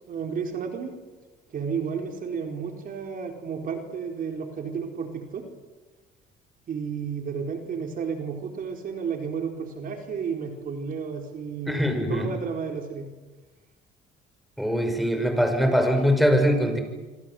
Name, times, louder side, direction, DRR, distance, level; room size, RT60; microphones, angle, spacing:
voice 1, 0.1-0.9 1.5-5.4 6.7-11.8 12.1-13.0, right 6 dB, 55° right, 4 dB, 4.4 m, -32 dB
voice 2, 11.7-12.3 14.6-16.8, equal, ahead, 6 dB, 6.2 m, -22 dB
26.0 x 26.0 x 7.9 m, 1.2 s
cardioid pair, 100°, 18 cm